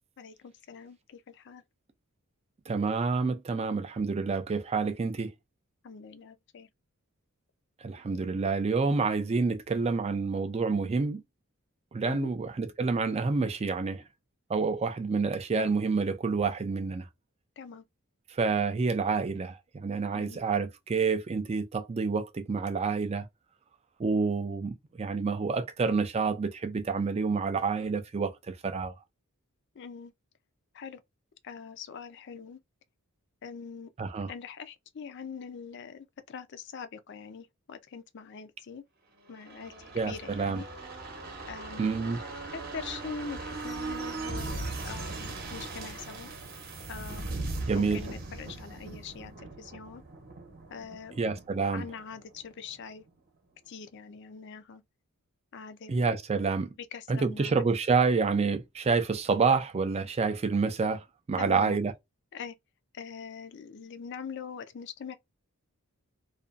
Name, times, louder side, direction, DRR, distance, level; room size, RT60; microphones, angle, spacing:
voice 1, 0.2-1.6 5.8-6.7 12.1-12.3 17.6-17.9 20.1-20.4 29.7-30.1 30.7-31.0 31.4-32.6 33.4-33.9 34.3-38.8 39.3-40.7 41.5-42.0 42.7-46.3 46.9-47.3 47.7-50.0 50.7-51.2 51.7-53.0 53.7-54.8 55.5-56.2 56.8-57.7 61.4-61.8 62.3-62.6 62.9-65.2, left 6 dB, 50° left, 0.4 m, -43 dB
voice 2, 2.7-5.3 7.8-11.2 11.9-14.0 14.5-17.1 18.3-23.3 24.0-28.9 34.0-34.3 39.9-40.6 41.8-42.2 47.7-48.0 51.2-51.9 55.9-56.7 57.1-61.9, right 4 dB, 30° right, 0.3 m, -28 dB
sound 1, 39.3-52.8 53.1-53.2, right 3 dB, 45° right, 0.8 m, -39 dB
2.4 x 2.2 x 2.4 m
head